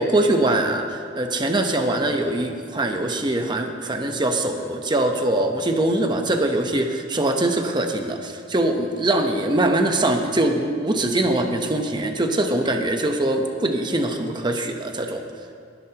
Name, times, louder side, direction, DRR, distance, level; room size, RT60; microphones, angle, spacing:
voice 1, 0.0-15.2, right 1 dB, 25° right, 4 dB, 0.9 m, -22 dB
21.0 x 11.5 x 2.9 m, 2.4 s
head